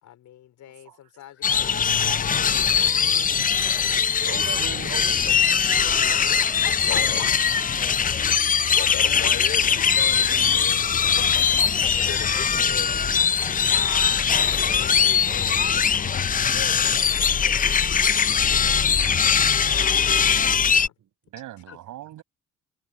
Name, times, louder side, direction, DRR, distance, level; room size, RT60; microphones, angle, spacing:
voice 1, 0.0-3.4 6.4-9.9 11.2-12.2 13.5-18.0 19.8-20.9, left 12 dB, 75° left, 4.2 m, -43 dB
sound 1, 1.4-20.9, left 7 dB, 30° left, 0.5 m, -21 dB
voice 2, 4.2-6.3 14.2-14.4 15.9-16.2 17.3-17.5 19.0-19.3 21.0-21.1, right 10 dB, 65° right, 3.8 m, -41 dB
voice 3, 6.9-7.2 8.7-10.8 11.9-13.0, left 7 dB, 50° left, 3.4 m, -36 dB
voice 4, 13.3-13.9 15.7-15.9 18.9-19.0 20.3-20.7 21.3-22.2, right 14 dB, 85° right, 6.7 m, -43 dB
cardioid pair, 90°, 30 cm